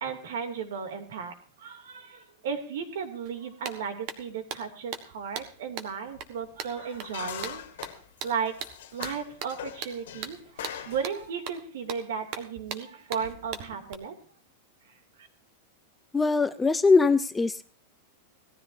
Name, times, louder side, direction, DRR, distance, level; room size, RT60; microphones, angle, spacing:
voice 1, 0.0-7.6 8.2-8.6 8.9-14.1, right 6 dB, 75° right, 5 dB, 2.8 m, -35 dB
sound 1, 3.3-3.4 3.6-13.9, right 7 dB, 40° right, 1.5 m, -40 dB
sound 2, 6.1-6.2 6.8-11.3, left 10 dB, 80° left, 2.0 m, -42 dB
voice 2, 16.1-17.7, left 4 dB, 10° left, 12 dB, 0.5 m, -22 dB
18.0 x 14.0 x 2.7 m, 0.41 s
supercardioid pair, 160°, 0 cm